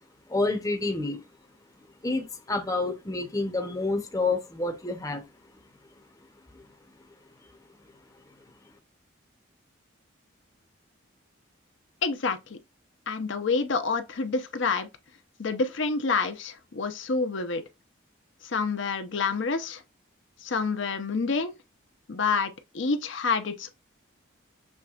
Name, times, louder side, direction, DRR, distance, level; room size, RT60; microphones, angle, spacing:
voice 1, 0.3-1.2 2.0-5.2, left 3 dB, 15° left, 0.7 m, -28 dB
voice 2, 12.0-12.6 13.1-14.9 15.4-17.6 18.4-19.8 20.4-21.5 22.1-23.8, left 4 dB, 65° left, 0.7 m, -28 dB
6.4 x 3.3 x 2.4 m
head